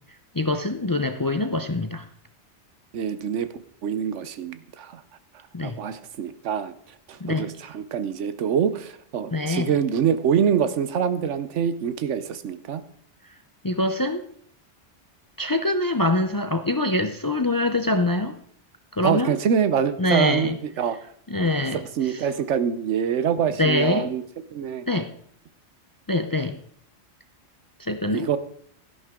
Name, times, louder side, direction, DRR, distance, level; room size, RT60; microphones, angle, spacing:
voice 1, 0.3-2.1 5.5-5.8 7.2-7.5 9.3-9.7 13.6-14.2 15.4-18.4 18.9-19.4 20.0-20.6 21.3-22.2 23.6-24.1 24.9-25.1 26.1-26.6 27.8-28.3, left 2 dB, 30° left, 8 dB, 0.3 m, -24 dB
voice 2, 2.9-3.5 3.8-5.0 5.6-6.7 7.1-12.8 19.0-21.0 22.0-24.2 24.5-24.8 28.1-28.4, right 8 dB, 80° right, 12 dB, 1.1 m, -25 dB
12.0 x 11.0 x 3.6 m, 0.62 s
omnidirectional pair, 1.2 m